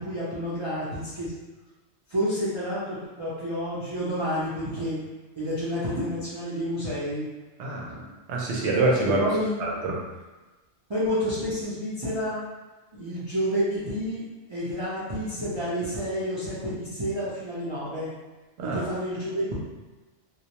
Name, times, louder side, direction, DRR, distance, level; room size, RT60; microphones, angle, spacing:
voice 1, 0.0-1.3 2.1-5.0 5.4-7.3 9.2-9.6 10.9-12.4 12.9-18.1 18.6-19.5, equal, 40° right, -11 dB, 0.4 m, -29 dB
voice 2, 7.6-8.0 8.3-9.3 9.6-10.0 18.6-18.8, right 2 dB, 70° right, -3 dB, 0.8 m, -25 dB
2.2 x 2.1 x 2.8 m, 1.2 s
omnidirectional pair, 1.3 m